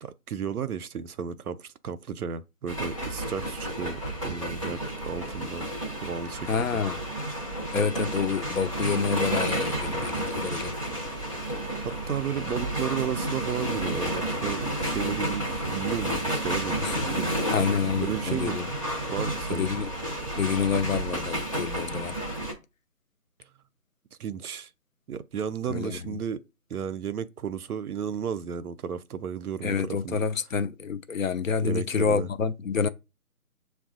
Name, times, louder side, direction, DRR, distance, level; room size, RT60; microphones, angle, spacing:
voice 1, 0.0-5.7 6.0-6.8 11.8-17.3 18.0-18.6 19.1-19.6 24.2-24.7 25.1-26.4 26.7-29.8 30.0-30.2 31.6-32.3, right 7 dB, 75° right, 0.5 m, -33 dB
sound 1, 2.7-22.5, right 1 dB, 20° left, 0.7 m, -31 dB
voice 2, 6.5-7.0 7.7-10.7 16.8-18.7 19.5-19.9 20.3-22.2 25.7-26.2 29.6-32.9, left 6 dB, 60° left, 0.5 m, -28 dB
6.9 x 2.3 x 2.3 m
figure-of-eight pair, 160°, 45 cm